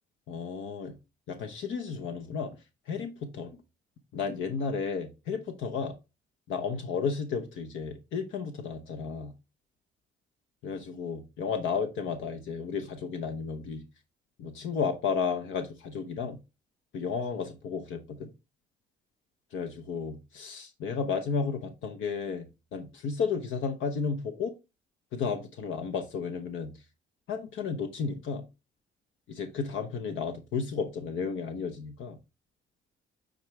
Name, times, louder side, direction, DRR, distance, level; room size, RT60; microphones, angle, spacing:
voice 1, 0.3-0.9 1.3-2.5 2.9-3.5 4.1-6.0 6.5-9.3 10.6-13.8 14.4-16.4 16.9-18.3 19.5-22.4 22.7-24.5 25.1-26.7 27.3-28.4 29.3-32.2, left 5 dB, 75° left, 0.9 m, -33 dB
9.0 x 3.8 x 3.1 m
cardioid pair, 90°, 20 cm